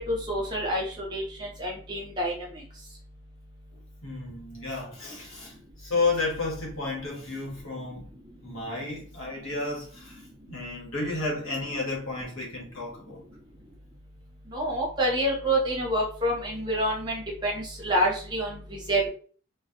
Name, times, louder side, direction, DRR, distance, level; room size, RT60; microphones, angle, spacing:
voice 1, 0.1-2.3 14.5-19.1, right 1 dB, 20° right, 0.7 m, -27 dB
voice 2, 4.0-8.1 8.4-10.2 10.5-13.2, left 3 dB, 85° left, 1.0 m, -32 dB
2.3 x 2.1 x 2.6 m
head